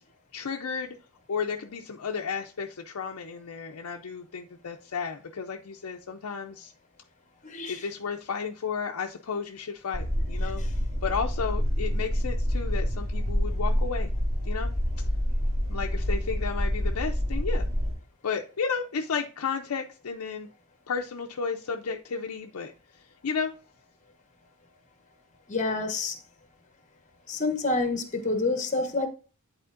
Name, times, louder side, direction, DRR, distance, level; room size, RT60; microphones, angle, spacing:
voice 1, 0.3-0.9 1.3-6.7 7.7-10.6 11.0-14.1 14.5-14.7 15.7-17.7 18.2-20.5 20.9-22.7 23.2-23.5, left 5 dB, 80° left, 0.5 m, -33 dB
voice 2, 7.4-7.8 25.5-26.2 27.3-29.1, left 3 dB, 35° left, 1.0 m, -28 dB
sound 1, 9.9-17.9, equal, 45° right, 2.3 m, -27 dB
10.5 x 4.2 x 2.5 m
head